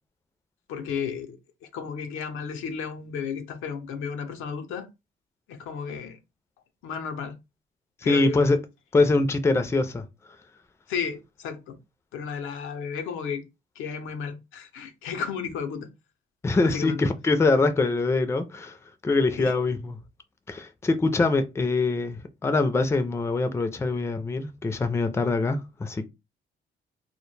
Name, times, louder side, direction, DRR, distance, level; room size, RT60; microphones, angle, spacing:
voice 1, 0.7-1.4 1.7-4.9 5.5-6.2 6.8-7.4 8.0-8.4 10.9-11.8 12.1-13.4 13.8-15.9 16.6-17.1 19.3-19.5, left 6 dB, 90° left, 0.5 m, -33 dB
voice 2, 8.0-8.6 8.9-10.0 16.4-18.8 19.0-20.0 20.5-26.1, left 3 dB, 15° left, 0.3 m, -24 dB
2.1 x 2.0 x 3.1 m
cardioid pair, 90°, 20 cm